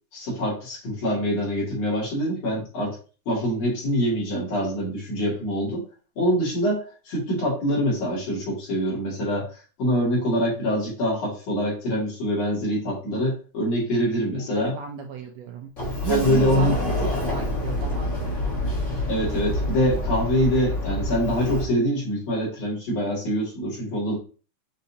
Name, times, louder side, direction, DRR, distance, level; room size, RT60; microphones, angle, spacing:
voice 1, 0.1-3.0 3.3-5.8 6.2-14.8 16.1-16.8 19.1-24.2, equal, 60° left, -5 dB, 3.1 m, -25 dB
voice 2, 14.4-15.7 16.0-16.8 17.0-18.3, right 8 dB, 75° right, 3 dB, 1.6 m, -32 dB
Sliding door, 15.8-21.7, left 1 dB, 35° left, 1.3 m, -27 dB
6.6 x 2.7 x 2.7 m, 0.36 s
omnidirectional pair, 3.4 m